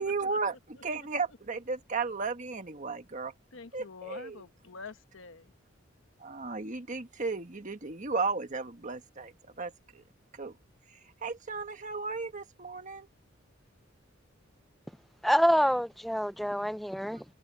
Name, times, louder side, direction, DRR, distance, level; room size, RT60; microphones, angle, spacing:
voice 1, 0.0-3.3 3.7-4.4 6.2-10.0 10.3-10.5 10.9-13.1, right 4 dB, 40° right, 1.5 m, -35 dB
voice 2, 3.5-5.5, left 4 dB, 75° left, 1.1 m, -46 dB
voice 3, 15.2-17.2, equal, ahead, 0.5 m, -26 dB
head